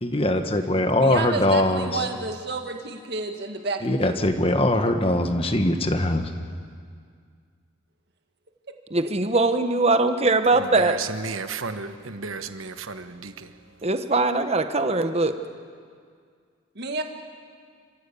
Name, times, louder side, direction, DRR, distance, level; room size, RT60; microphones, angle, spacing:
voice 1, 0.0-1.9 3.8-6.3, left 1 dB, 25° left, 6 dB, 1.4 m, -22 dB
voice 2, 1.0-4.3 4.9-5.3 8.7-8.8 9.0-9.1 16.8-17.0, right 3 dB, 50° right, 5 dB, 1.8 m, -31 dB
voice 3, 8.9-11.0 13.8-15.4, right 2 dB, 30° right, 8 dB, 1.0 m, -21 dB
voice 4, 10.6-13.5, right 4 dB, 75° right, 10 dB, 1.1 m, -33 dB
28.0 x 15.5 x 8.5 m, 2.1 s
head